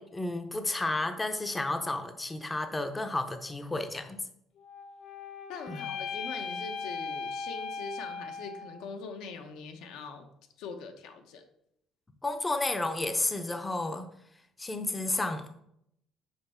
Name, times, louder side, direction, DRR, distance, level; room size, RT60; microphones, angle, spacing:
voice 1, 0.0-4.2 5.7-5.9 12.2-14.1 14.6-15.5, left 2 dB, 15° left, 7 dB, 0.5 m, -32 dB
sound 1, 4.6-8.9, left 5 dB, 55° left, 0.7 m, -38 dB
voice 2, 5.5-10.3 10.6-11.5, left 5 dB, 85° left, 5 dB, 1.0 m, -42 dB
5.8 x 4.7 x 5.6 m, 0.76 s
cardioid pair, 145°, 0 cm